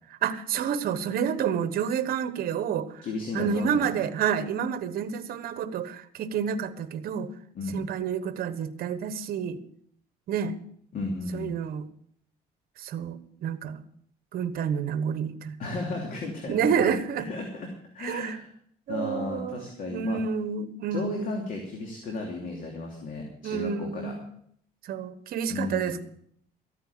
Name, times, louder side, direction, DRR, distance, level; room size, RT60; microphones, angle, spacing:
voice 1, 0.2-3.0 3.3-7.3 7.7-9.6 10.3-10.6 11.3-11.9 12.8-13.8 14.3-15.6 16.5-17.3 18.0-18.4 18.9-19.6 19.9-21.4 23.4-24.3 24.8-26.0, right 7 dB, 60° right, 12 dB, 1.2 m, -29 dB
voice 2, 3.0-4.0 7.5-7.8 10.9-11.5 15.6-16.9 17.3-17.7 17.9-18.5 18.9-20.2 20.9-24.1 25.5-26.0, left 2 dB, 55° left, 1 dB, 2.9 m, -34 dB
14.0 x 9.1 x 7.0 m, 0.65 s
cardioid pair, 110°, 17 cm